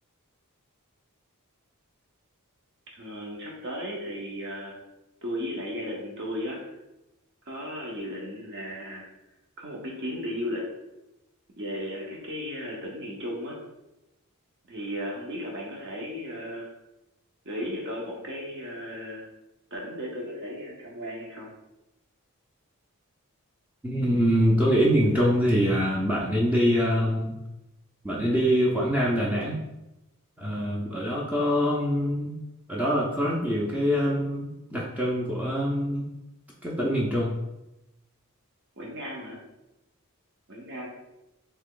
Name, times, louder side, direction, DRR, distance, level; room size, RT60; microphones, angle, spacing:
voice 1, 2.9-4.8 5.2-6.7 7.5-9.0 9.6-10.7 11.6-13.6 14.7-16.7 17.4-19.3 19.7-21.5 38.8-39.4 40.5-40.9, equal, 55° right, -2 dB, 0.7 m, -35 dB
voice 2, 23.8-27.4 28.0-29.6 30.4-32.4 32.7-36.1 36.6-37.4, equal, 5° right, -5 dB, 0.5 m, -24 dB
3.3 x 2.9 x 3.7 m, 0.94 s
head